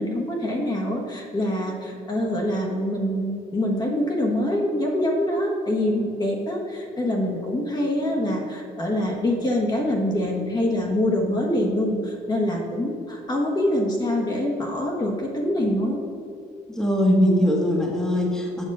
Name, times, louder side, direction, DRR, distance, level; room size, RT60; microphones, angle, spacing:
voice 1, 0.0-16.0, left 1 dB, 25° left, -1 dB, 1.4 m, -25 dB
voice 2, 16.8-18.6, equal, 5° left, -1 dB, 1.5 m, -21 dB
8.1 x 6.1 x 5.4 m, 2.5 s
cardioid pair, 110°, 17 cm